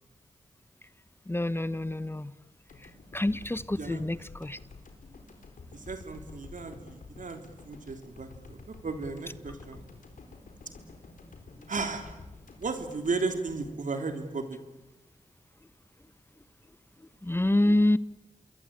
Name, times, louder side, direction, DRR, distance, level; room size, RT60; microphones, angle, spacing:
voice 1, 1.3-2.3 3.1-4.6 17.2-18.0, left 1 dB, 15° left, 16 dB, 1.0 m, -26 dB
sound 1, 2.7-14.9, left 3 dB, 75° left, 4.4 m, -50 dB
voice 2, 5.7-9.8 11.7-12.2 12.6-14.6, right 4 dB, 70° right, 6 dB, 3.3 m, -35 dB
27.5 x 22.0 x 8.9 m, 1.0 s
cardioid pair, 40°, 14 cm